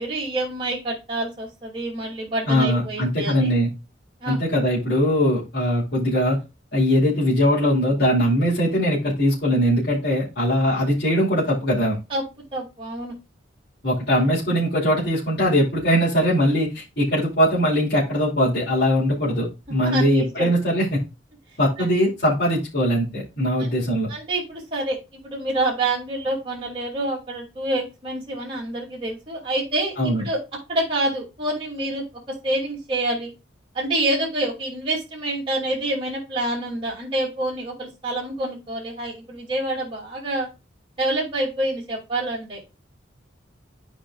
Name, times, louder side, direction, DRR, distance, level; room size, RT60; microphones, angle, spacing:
voice 1, 0.0-3.5 4.2-4.4 12.1-13.1 19.8-20.5 21.8-21.9 24.1-30.4 30.7-32.0 32.4-33.3 33.7-40.5 41.0-42.6, right 1 dB, 25° right, -4 dB, 2.6 m, -27 dB
voice 2, 2.5-3.7 4.3-6.4 6.7-12.0 13.8-21.0 21.6-24.1 30.0-30.2, equal, 55° left, -8 dB, 2.8 m, -21 dB
12.0 x 5.0 x 2.4 m, 0.27 s
head